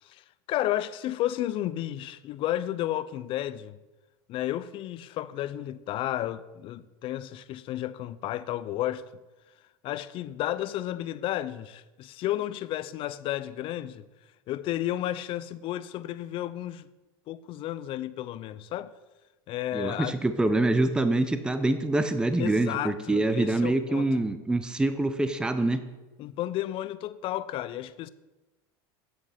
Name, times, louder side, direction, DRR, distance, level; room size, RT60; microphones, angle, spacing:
voice 1, 0.0-3.8 4.3-9.0 9.8-14.0 14.5-16.9 17.3-18.9 19.5-20.2 22.4-24.1 26.2-28.1, left 13 dB, 45° left, 0.5 m, -32 dB
voice 2, 19.7-25.8, right 2 dB, 5° right, 0.6 m, -25 dB
8.0 x 7.3 x 5.0 m
supercardioid pair, 115°, 12 cm